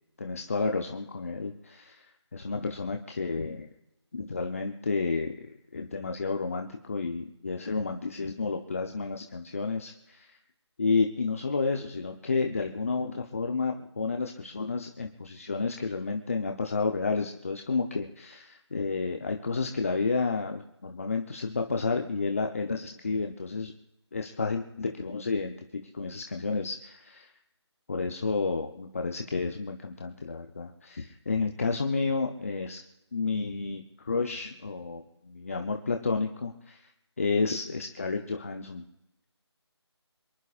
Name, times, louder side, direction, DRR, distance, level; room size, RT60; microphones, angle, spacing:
voice 1, 0.2-3.7 4.1-10.4 10.8-23.7 24.1-25.5 25.9-27.3 27.9-32.8 33.1-36.9 37.2-38.8, left 4 dB, 30° left, 4 dB, 0.8 m, -31 dB
27.5 x 11.0 x 2.5 m, 0.88 s
figure-of-eight pair, 170°, 15 cm